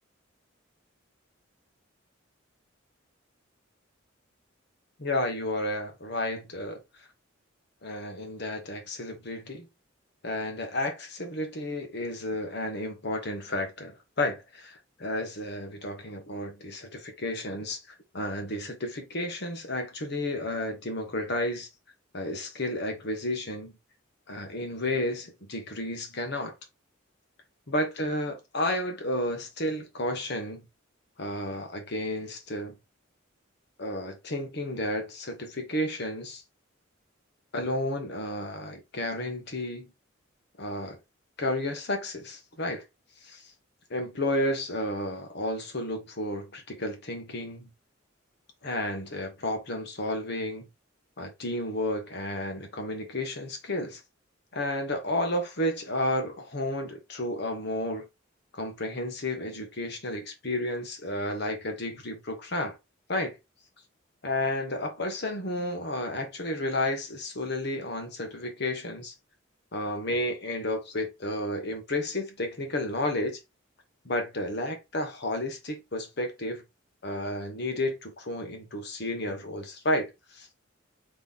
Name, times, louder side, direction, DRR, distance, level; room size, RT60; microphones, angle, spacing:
voice 1, 5.0-7.1 7.8-9.7 10.2-21.7 22.1-23.7 24.3-26.5 27.7-30.6 31.2-32.7 33.8-36.4 37.5-39.9 40.6-41.0 41.4-42.8 43.2-43.5 43.9-47.7 48.6-50.6 51.2-54.0 54.5-58.1 58.5-62.8 63.1-63.4 64.2-69.1 69.7-73.4 74.0-76.6 77.0-80.5, left 1 dB, 55° left, 1.3 m, -32 dB
4.0 x 3.3 x 3.6 m
head